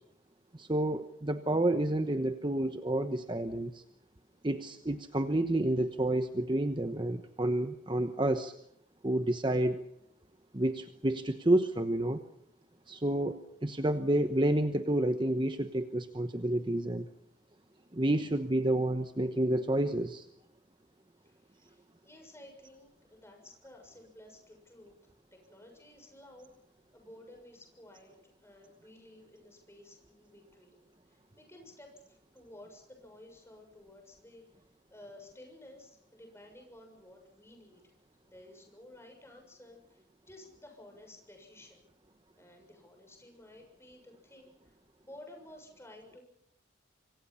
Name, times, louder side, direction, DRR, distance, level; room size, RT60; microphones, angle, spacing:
voice 1, 0.5-3.8 4.4-8.5 9.0-9.8 10.5-12.2 12.9-17.0 17.9-20.3, right 1 dB, 25° right, 8 dB, 1.0 m, -29 dB
voice 2, 21.2-25.0 25.3-26.5 26.9-28.2 28.4-30.8 31.1-34.4 34.9-37.9 38.2-41.9 42.4-44.7 45.0-46.2, left 1 dB, 15° left, 3 dB, 6.7 m, -54 dB
26.5 x 24.5 x 5.7 m, 0.74 s
head